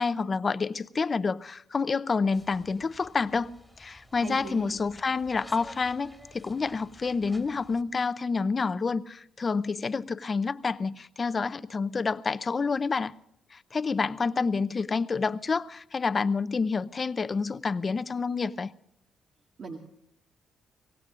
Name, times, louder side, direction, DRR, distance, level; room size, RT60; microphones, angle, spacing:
voice 1, 0.0-13.1 13.5-18.7, left 4 dB, 35° left, 0.6 m, -28 dB
sound 1, 2.3-7.8, equal, ahead, 2.0 m, -52 dB
voice 2, 4.2-4.8 19.6-19.8, right 4 dB, 50° right, 1.8 m, -39 dB
24.5 x 17.5 x 2.5 m
cardioid pair, 90°, 0 cm